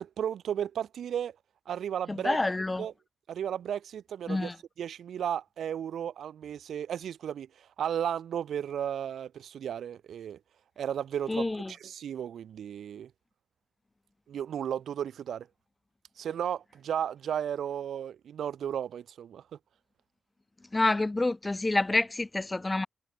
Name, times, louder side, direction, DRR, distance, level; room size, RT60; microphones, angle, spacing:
voice 1, 0.0-1.3 1.7-2.4 2.8-2.9 3.3-4.5 4.8-10.4 10.8-13.1 14.3-15.5 16.2-19.4, right 9 dB, 80° right, 1.4 m, -34 dB
voice 2, 2.1-2.8 4.3-4.5 11.3-11.7 20.7-22.9, left 2 dB, 25° left, 1.1 m, -28 dB
supercardioid pair, 45°, 0 cm